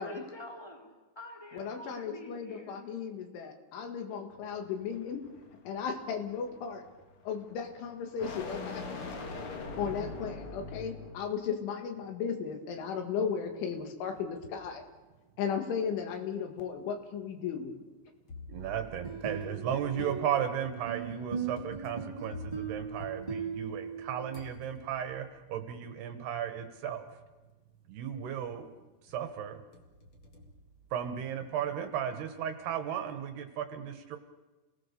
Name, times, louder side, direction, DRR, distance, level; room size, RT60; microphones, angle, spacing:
voice 1, 0.0-2.8, equal, 10° left, 2 dB, 2.1 m, -47 dB
voice 2, 1.5-5.2 5.7-6.8 7.3-9.1 9.8-14.8 15.4-17.7, left 6 dB, 80° left, 6 dB, 4.4 m, -35 dB
sound 1, 4.3-11.4, left 3 dB, 55° left, 1.5 m, -43 dB
sound 2, 13.8-14.7 15.3-15.4 16.3-16.4 18.3-24.0 24.3-25.3 26.5-26.6 27.1-27.5 27.9-28.7 29.1-31.4, left 2 dB, 35° left, 2.3 m, -51 dB
voice 3, 18.5-27.1 27.9-28.7 29.0-29.6 30.9-34.2, right 9 dB, 70° right, 8 dB, 2.9 m, -35 dB
sound 3, 18.8-24.4, right 5 dB, 25° right, 0.8 m, -39 dB
28.5 x 18.5 x 6.9 m, 1.2 s
omnidirectional pair, 5.5 m